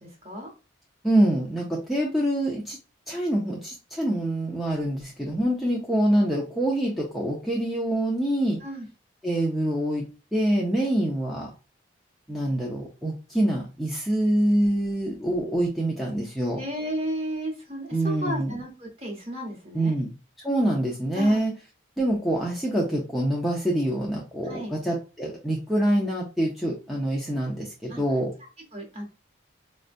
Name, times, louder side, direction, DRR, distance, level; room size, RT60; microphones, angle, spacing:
voice 1, 0.0-0.5 5.5-5.8 8.6-8.9 16.5-20.0 21.1-21.4 24.5-24.7 27.9-28.0 28.7-29.0, right 1 dB, 30° right, 1 dB, 1.0 m, -34 dB
voice 2, 1.0-2.8 3.1-8.6 9.2-10.0 10.3-11.5 12.3-16.6 17.9-18.5 19.7-20.1 20.4-21.5 22.0-28.3, right 1 dB, ahead, -3 dB, 0.4 m, -25 dB
4.1 x 2.1 x 2.5 m, 0.32 s
head